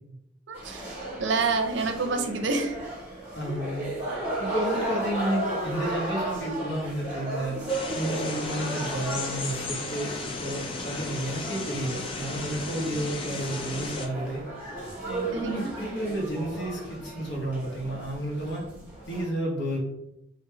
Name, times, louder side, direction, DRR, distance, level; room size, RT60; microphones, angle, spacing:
sound 1, 0.5-19.3, right 2 dB, 10° right, 1.2 m, -35 dB
voice 1, 0.5-0.8 1.2-2.9 15.3-15.7, right 4 dB, 70° right, 6 dB, 0.5 m, -28 dB
voice 2, 3.3-3.9 4.4-7.6 7.9-10.1 10.4-14.4 15.0-18.6 19.1-19.8, right 1 dB, 65° left, -1 dB, 1.0 m, -31 dB
sound 2, 7.7-14.1, left 3 dB, 30° left, 0.4 m, -35 dB
3.2 x 2.4 x 3.2 m, 0.84 s
head